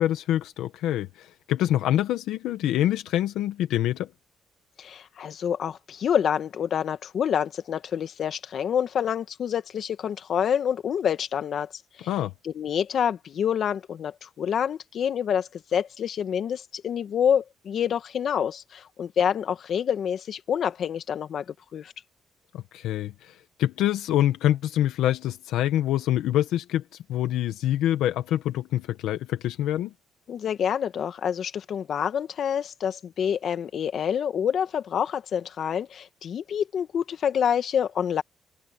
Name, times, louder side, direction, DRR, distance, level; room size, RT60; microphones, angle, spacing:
voice 1, 0.0-4.1 12.1-12.3 22.5-26.8 27.1-29.9, left 12 dB, 90° left, 1.1 m, -25 dB
voice 2, 4.8-12.1 12.4-21.9 30.3-38.2, left 8 dB, 60° left, 1.9 m, -27 dB
cardioid pair, 90°, 0 cm